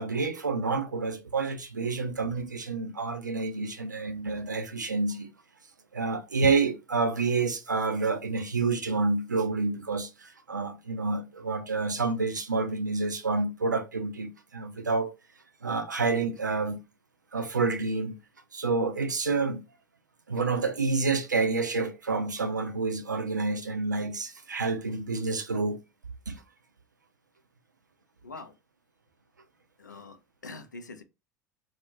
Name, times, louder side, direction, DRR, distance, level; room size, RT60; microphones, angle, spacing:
voice 1, 0.0-5.3 5.9-15.1 15.6-16.8 17.3-18.2 18.5-19.6 20.3-25.8 26.3-26.4, right 4 dB, 85° right, 0.4 m, -28 dB
voice 2, 28.2-28.6 29.8-31.0, left 3 dB, 85° left, 0.4 m, -44 dB
2.3 x 2.1 x 2.6 m
figure-of-eight pair, 70°, 10 cm